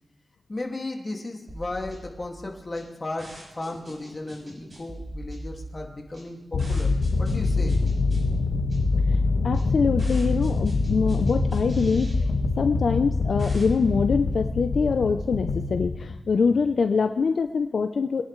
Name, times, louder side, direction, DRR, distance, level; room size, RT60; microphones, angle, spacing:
voice 1, 0.5-6.9 7.2-7.8, left 2 dB, 35° left, 1 dB, 2.2 m, -35 dB
sound 1, 1.5-15.1, right 1 dB, 40° right, 6.3 m, -41 dB
sound 2, 6.5-16.6, left 3 dB, 90° left, 1.3 m, -25 dB
voice 2, 9.4-12.3 12.6-18.2, left 5 dB, 70° left, 7 dB, 0.6 m, -24 dB
23.5 x 10.5 x 3.2 m, 1.1 s
wide cardioid pair, 85°, 0 cm